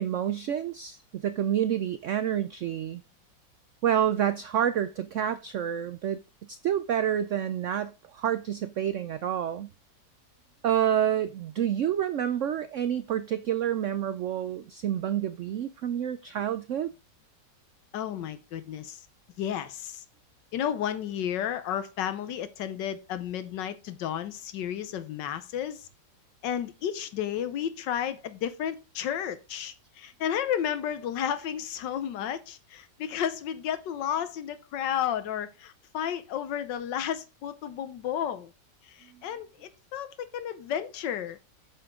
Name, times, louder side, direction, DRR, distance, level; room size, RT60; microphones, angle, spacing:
voice 1, 0.0-3.0 3.8-6.2 6.5-9.7 10.6-16.9, right 10 dB, 85° right, 0.6 m, -28 dB
voice 2, 17.9-19.1 19.4-20.0 20.5-25.9 26.4-38.5 38.8-41.4, left 9 dB, 90° left, 1.5 m, -32 dB
8.6 x 6.8 x 3.6 m
omnidirectional pair, 1.9 m